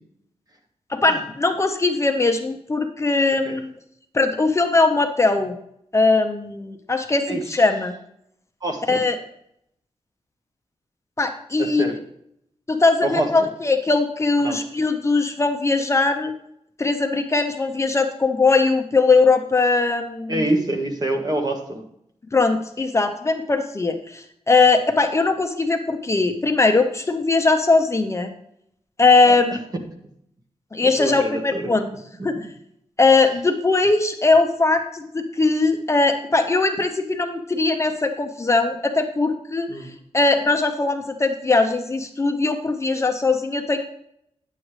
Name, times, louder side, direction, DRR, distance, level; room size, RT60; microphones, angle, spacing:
voice 1, 0.9-3.7 4.1-5.6 5.9-8.0 8.9-9.2 11.2-11.9 12.7-16.3 16.8-20.4 22.3-28.3 29.0-29.6 30.7-31.9 32.2-32.4 33.0-39.7 40.1-43.8, left 3 dB, 25° left, 5 dB, 0.7 m, -20 dB
voice 2, 7.3-7.6 8.6-9.0 11.6-12.0 13.0-13.5 14.4-14.6 20.3-21.8 29.2-29.4 31.0-32.0 32.3-32.5 39.7-39.9, right 1 dB, 35° right, 3 dB, 1.5 m, -26 dB
9.8 x 7.7 x 3.2 m, 0.73 s
wide cardioid pair, 130°, 11 cm